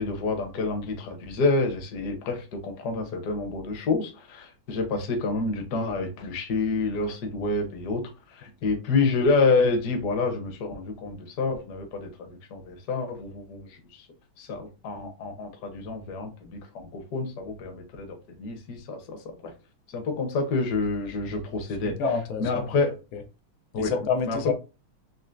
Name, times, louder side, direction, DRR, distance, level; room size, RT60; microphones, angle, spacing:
voice 1, 0.0-8.0 8.3-13.7 14.4-16.6 16.9-19.3 19.9-22.0 22.4-22.9 23.7-23.9 24.2-24.5, left 3 dB, 60° left, 1.2 m, -28 dB
voice 2, 21.8-22.7 23.1-23.2 23.8-24.5, left 5 dB, 90° left, 1.6 m, -28 dB
4.4 x 2.9 x 2.5 m
omnidirectional pair, 2.2 m